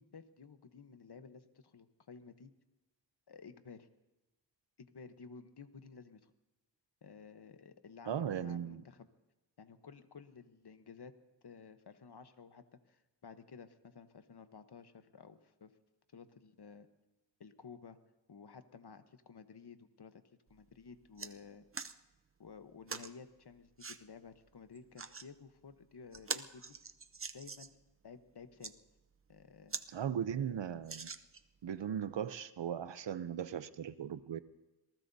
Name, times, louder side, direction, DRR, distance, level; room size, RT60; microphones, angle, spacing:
voice 1, 0.0-2.5 3.3-3.9 4.8-6.3 7.0-9.1 9.6-11.1 11.4-15.7 16.1-16.9 17.4-18.0 18.3-20.2 20.5-21.7 22.4-26.8 27.3-27.8 28.0-28.8 29.3-29.8, left 5 dB, 65° left, 10 dB, 1.1 m, -54 dB
voice 2, 8.1-8.8 29.9-31.1 31.6-34.4, right 8 dB, 85° right, 13 dB, 0.7 m, -38 dB
sound 1, 20.5-20.6 20.9-21.3 21.7-22.0 22.9-23.1 23.8-24.0 24.8-25.3 25.7-25.8 26.1-27.8 28.4-28.7 29.3-29.4 29.7-29.9 30.2-30.3 30.8-31.6 32.2-32.3, right 5 dB, 30° right, 0.6 m, -43 dB
26.5 x 19.0 x 2.7 m, 1.0 s
wide cardioid pair, 65°, 43 cm